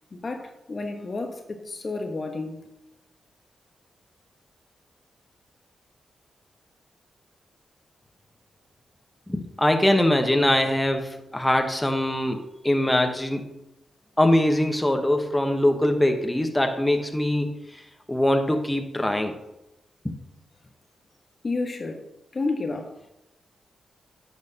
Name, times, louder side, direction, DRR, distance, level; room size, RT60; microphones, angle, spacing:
voice 1, 0.1-2.6 21.4-22.0 22.3-23.1, left 3 dB, 45° left, 1.1 m, -31 dB
voice 2, 9.3-13.6 14.2-17.8 18.1-19.3 20.0-20.2, left 1 dB, 15° left, 1.0 m, -23 dB
10.5 x 6.3 x 2.8 m
supercardioid pair, 50°, 0 cm